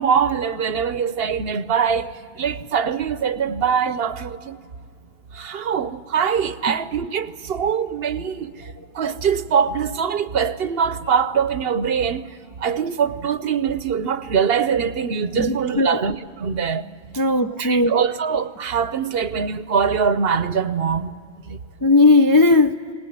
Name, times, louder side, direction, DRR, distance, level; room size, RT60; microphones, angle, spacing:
voice 1, 0.0-4.6 5.3-8.7 8.9-12.3 12.6-16.9 17.6-21.2 21.5-21.6, right 7 dB, 60° right, 0.9 m, -23 dB
voice 2, 15.4-16.0 17.2-18.0 21.8-22.8, left 2 dB, 30° left, 0.4 m, -16 dB
23.5 x 18.5 x 9.2 m
omnidirectional pair, 1.2 m